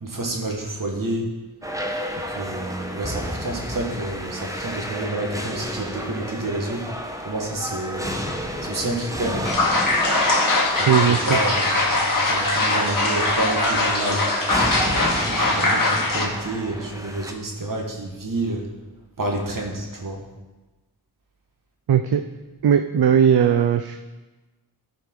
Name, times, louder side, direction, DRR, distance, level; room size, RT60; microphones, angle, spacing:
voice 1, 0.0-1.4 2.3-6.8 7.2-8.2 8.6-9.5 10.8-14.3 14.9-18.7 19.2-20.2, right 2 dB, 55° right, 1 dB, 1.9 m, -29 dB
sound 1, 1.6-17.3, equal, 10° right, 1.0 m, -31 dB
sound 2, 9.4-16.3, left 2 dB, 55° left, 1.8 m, -21 dB
voice 2, 10.9-11.3 21.9-22.2 22.6-24.0, right 8 dB, 70° right, 8 dB, 0.5 m, -18 dB
14.0 x 5.2 x 4.8 m, 1.1 s
wide cardioid pair, 70°, 39 cm